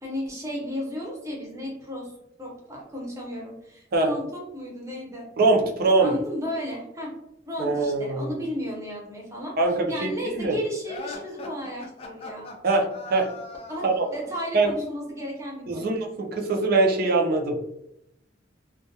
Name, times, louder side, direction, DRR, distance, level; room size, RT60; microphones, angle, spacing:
voice 1, 0.0-2.1 2.4-7.1 7.5-12.5 13.7-16.0, equal, 15° right, -2 dB, 0.7 m, -34 dB
voice 2, 5.4-6.1 7.6-8.4 9.6-10.6 12.6-13.3 13.8-14.0 14.5-14.7 15.7-17.6, right 3 dB, 50° right, 2 dB, 0.4 m, -23 dB
sound 1, 10.8-14.4, left 2 dB, 30° left, 0.4 m, -40 dB
2.2 x 2.2 x 2.6 m, 0.79 s
head